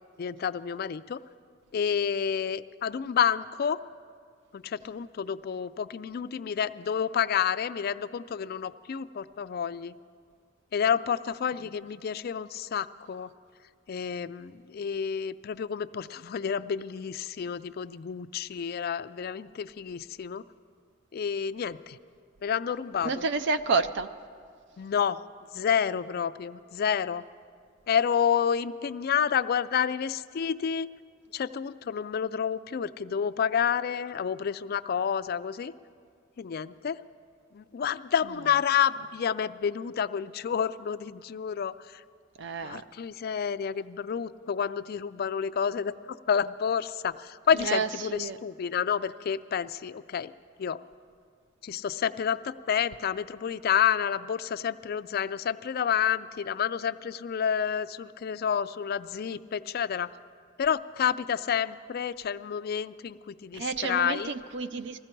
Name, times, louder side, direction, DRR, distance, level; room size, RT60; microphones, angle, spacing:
voice 1, 0.2-1.2 1.7-3.8 4.5-9.9 10.7-13.3 13.9-20.4 21.1-22.0 22.4-23.3 24.8-25.2 25.5-27.2 27.9-30.9 31.3-35.7 36.4-37.0 37.5-41.7 42.6-50.3 50.6-50.8 51.6-60.1 60.6-64.3, left 7 dB, 50° left, 14 dB, 0.4 m, -29 dB
voice 2, 23.0-24.1 42.4-42.8 47.6-48.4 63.5-65.0, right 4 dB, 65° right, 12 dB, 0.4 m, -29 dB
20.0 x 15.5 x 4.5 m, 2.1 s
head